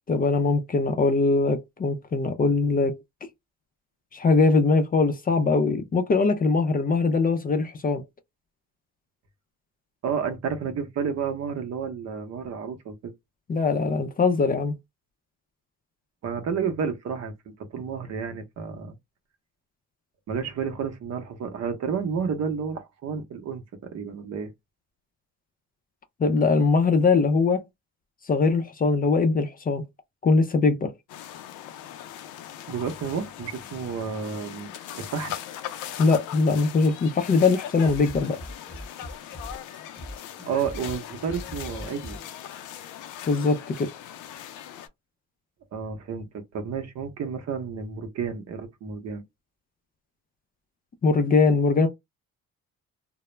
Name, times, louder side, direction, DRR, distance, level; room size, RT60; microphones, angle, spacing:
voice 1, 0.1-3.0 4.1-8.0 13.5-14.8 26.2-27.6 28.3-29.8 30.2-30.9 36.0-38.4 43.3-43.9 51.0-51.9, left 4 dB, 30° left, 0.4 m, -21 dB
voice 2, 10.0-13.1 16.2-18.9 20.3-24.5 32.7-35.4 40.5-42.2 45.7-49.2, right 6 dB, 60° right, 0.7 m, -31 dB
sound 1, 31.1-44.9, left 11 dB, 90° left, 0.5 m, -40 dB
sound 2, 37.8-42.8, equal, 5° left, 0.8 m, -41 dB
2.2 x 2.0 x 3.0 m
cardioid pair, 90°, 30 cm